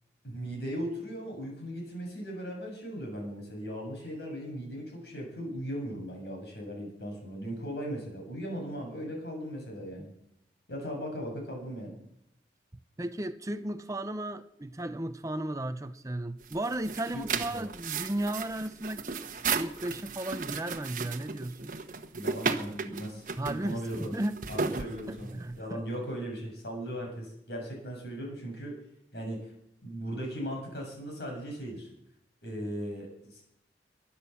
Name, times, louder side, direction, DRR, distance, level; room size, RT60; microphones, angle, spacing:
voice 1, 0.2-10.1 10.7-11.9 17.1-17.2 17.5-17.6 22.1-24.1 24.5-28.8 29.1-29.4 29.8-31.9 32.4-33.5, equal, 65° left, 0 dB, 7.3 m, -38 dB
voice 2, 13.0-21.7 23.4-24.3 24.8-25.8, right 1 dB, 20° right, 11 dB, 0.6 m, -35 dB
sound 1, 16.4-25.5, right 5 dB, 50° right, 1.1 m, -35 dB
22.5 x 8.8 x 7.2 m, 0.78 s
head